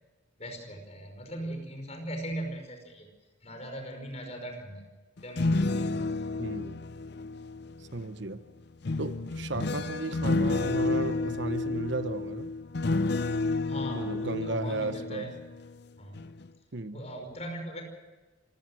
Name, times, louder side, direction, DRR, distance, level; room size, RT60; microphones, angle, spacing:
voice 1, 0.4-3.1 3.4-4.9 5.2-6.2 13.7-15.3 16.0-16.3 16.9-17.8, right 1 dB, 35° left, 5 dB, 5.3 m, -39 dB
sound 1, 5.2-8.1 8.8-15.8 16.1-16.5, left 3 dB, 60° left, 0.6 m, -30 dB
voice 2, 6.4-6.8 7.8-8.4 9.0-12.5 13.9-15.3 16.7-17.0, right 2 dB, 65° right, 12 dB, 1.0 m, -35 dB
26.5 x 17.0 x 6.3 m, 1.2 s
head